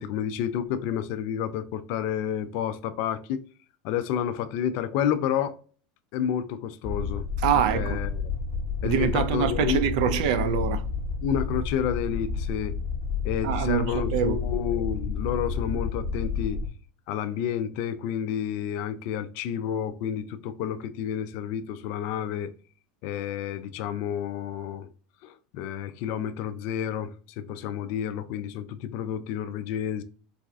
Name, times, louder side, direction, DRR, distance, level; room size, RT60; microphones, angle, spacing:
voice 1, 0.0-3.4 3.8-5.6 6.1-7.3 7.7-8.1 8.8-9.8 11.2-12.7 13.2-16.6 17.1-22.5 23.0-24.9 25.2-30.0, left 9 dB, 50° left, 0.3 m, -30 dB
sound 1, 6.8-16.7, left 4 dB, 25° left, 1.1 m, -30 dB
voice 2, 7.4-8.0 8.8-10.8 13.4-14.4, right 8 dB, 65° right, 0.4 m, -25 dB
3.9 x 2.5 x 2.3 m
supercardioid pair, 155°, 4 cm